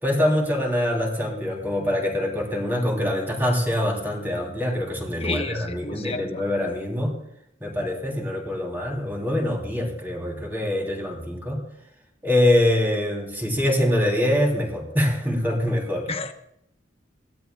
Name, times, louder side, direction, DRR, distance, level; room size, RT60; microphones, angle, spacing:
voice 1, 0.0-7.2 7.6-11.7 12.2-16.1, left 1 dB, 10° right, 0 dB, 3.2 m, -24 dB
voice 2, 5.2-6.4 16.1-16.3, left 3 dB, 30° left, 7 dB, 0.9 m, -31 dB
21.0 x 16.0 x 2.3 m, 0.76 s
head